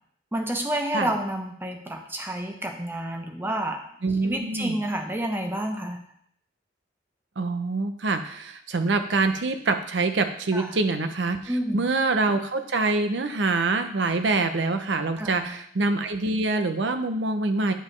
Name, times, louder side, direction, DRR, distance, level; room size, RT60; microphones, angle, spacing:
voice 1, 0.3-3.9 4.2-6.0 10.5-10.7 11.5-11.8 15.2-15.5, right 1 dB, 10° right, 4 dB, 0.7 m, -29 dB
voice 2, 4.0-4.8 7.4-11.4 11.7-17.7, right 3 dB, 85° right, 8 dB, 0.7 m, -25 dB
8.8 x 5.2 x 3.2 m, 0.68 s
head